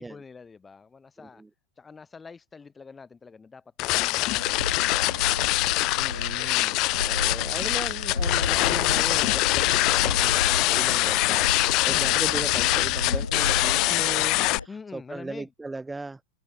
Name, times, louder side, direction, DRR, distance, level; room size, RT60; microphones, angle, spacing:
voice 1, 0.0-1.4 1.8-5.3 11.9-12.2 14.7-15.5, left 5 dB, 15° left, 6.0 m, -46 dB
voice 2, 1.2-1.5 5.9-16.2, right 3 dB, 10° right, 1.6 m, -38 dB
sound 1, 3.8-14.6, left 22 dB, 40° left, 0.6 m, -24 dB
sound 2, 4.4-14.7, left 3 dB, 80° left, 0.7 m, -33 dB
figure-of-eight pair, 90°, 0 cm